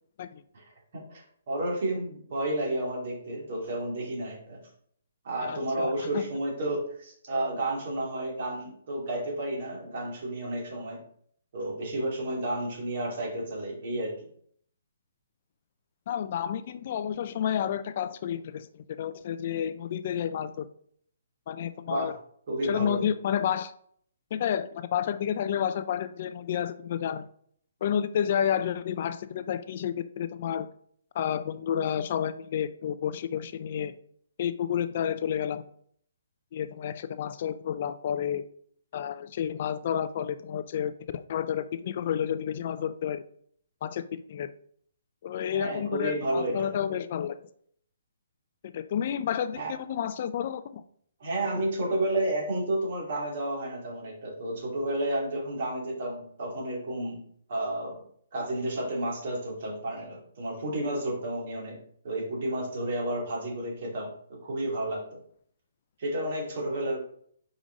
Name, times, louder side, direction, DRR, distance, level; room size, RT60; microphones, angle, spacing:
voice 1, 0.5-4.6 5.2-11.0 11.5-14.2 21.9-22.1 22.5-23.0 45.5-46.7 49.6-49.7 51.2-57.2 57.5-58.0 58.3-65.2 66.0-67.0, right 1 dB, 50° right, -2 dB, 2.6 m, -31 dB
voice 2, 5.4-6.2 16.1-20.7 21.5-22.1 22.6-23.7 24.3-27.3 27.8-30.7 31.1-34.0 34.4-35.6 36.5-38.4 38.9-43.2 43.8-44.5 45.2-47.4 48.6-50.8, left 9 dB, 45° left, 13 dB, 0.4 m, -30 dB
5.1 x 4.9 x 3.9 m, 0.62 s
hypercardioid pair, 155°, 0 cm